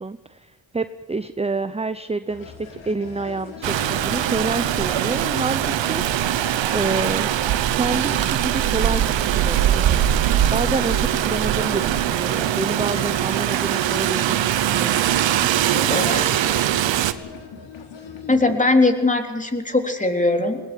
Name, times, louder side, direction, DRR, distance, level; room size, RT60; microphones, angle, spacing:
voice 1, 0.0-6.5 6.7-7.4 7.8-10.1 10.5-15.0, right 3 dB, 15° right, 12 dB, 0.8 m, -28 dB
sound 1, 2.3-18.5, left 6 dB, 85° left, 3.4 m, -39 dB
Rain, 3.6-17.1, right 11 dB, 85° right, 1.1 m, -21 dB
voice 2, 15.8-16.3 18.3-20.6, left 2 dB, 15° left, 5 dB, 3.6 m, -20 dB
19.5 x 19.0 x 9.1 m, 1.2 s
cardioid pair, 60°, 44 cm